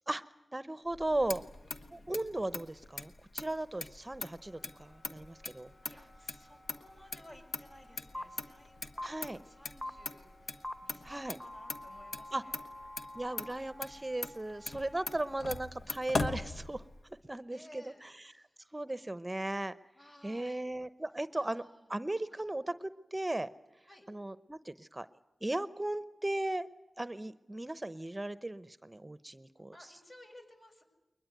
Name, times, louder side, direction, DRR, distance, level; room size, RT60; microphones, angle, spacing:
voice 1, 0.5-1.4 1.9-5.7 9.0-9.4 11.1-11.4 12.3-12.4 13.1-16.8 17.3-18.1 18.7-19.7 20.2-23.5 24.1-25.1 25.4-26.7 27.0-29.7, right 1 dB, 25° right, 14 dB, 0.8 m, -37 dB
Motor vehicle (road), 0.9-17.1, left 3 dB, 85° left, 1.4 m, -42 dB
voice 2, 1.1-2.1 3.8-3.9 4.6-4.7 5.9-12.6 14.6-15.4 17.5-18.6 19.9-20.6 21.3-21.9 22.3-22.4 23.9-24.1 29.7-30.8, left 1 dB, 45° left, 3 dB, 6.5 m, -58 dB
Wind instrument woodwind instrument, 3.6-15.7, equal, 25° left, 4.8 m, -60 dB
sound 1, 8.1-8.2 9.0-9.1 9.8-9.9 10.6-10.7 11.4-13.5, left 1 dB, ahead, 1.1 m, -43 dB
22.0 x 20.5 x 9.4 m, 1.0 s
cardioid pair, 45°, 0 cm